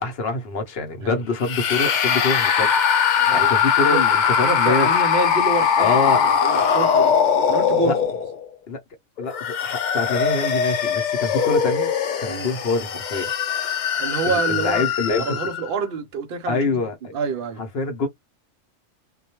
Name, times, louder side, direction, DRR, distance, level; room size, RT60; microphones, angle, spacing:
voice 1, 0.0-4.9 5.8-6.4 7.9-8.0 8.7-8.8 9.2-11.9 12.2-13.3 14.3-15.4 16.5-17.1 17.6-18.1, left 3 dB, 55° left, 0.8 m, -25 dB
sound 1, 1.4-8.5 9.2-15.7, left 7 dB, 75° left, 0.4 m, -21 dB
voice 2, 3.2-3.5 3.9-4.0 4.4-5.9 6.4-7.1 7.5-8.0 12.2-12.5 14.0-14.9 15.2-16.8 17.1-17.6, right 4 dB, 55° right, 0.7 m, -27 dB
2.2 x 2.1 x 2.9 m
omnidirectional pair, 1.3 m